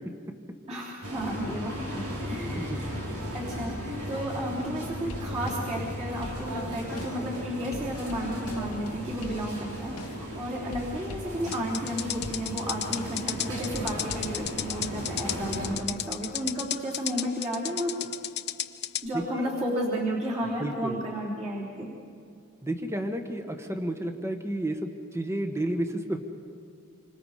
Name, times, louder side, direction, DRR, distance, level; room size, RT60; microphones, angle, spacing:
voice 1, 0.7-2.9 3.3-17.9 19.0-21.9, equal, 30° right, -6 dB, 3.5 m, -33 dB
sound 1, 1.0-15.8, equal, 75° right, 5.3 m, -36 dB
sound 2, 4.8-5.9 6.2-10.4 10.7-11.9 12.2-13.4 13.7-14.3, left 2 dB, 85° left, 1.1 m, -45 dB
sound 3, 11.5-19.1, left 13 dB, 50° left, 0.8 m, -33 dB
voice 2, 19.1-19.5 20.6-21.0 22.6-26.2, right 1 dB, 10° right, 5 dB, 1.4 m, -31 dB
28.0 x 25.5 x 5.0 m, 2.4 s
head